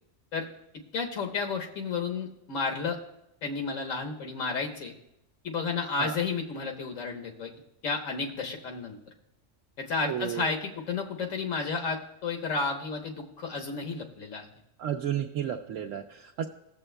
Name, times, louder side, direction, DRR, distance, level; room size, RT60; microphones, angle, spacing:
voice 1, 0.9-3.0 3.4-4.9 5.4-7.5 7.8-9.0 9.8-14.4, left 4 dB, 80° left, 3 dB, 1.5 m, -32 dB
voice 2, 10.0-10.5 14.8-16.4, right 10 dB, 85° right, 0 dB, 1.0 m, -32 dB
17.0 x 7.0 x 2.2 m, 0.82 s
omnidirectional pair, 1.3 m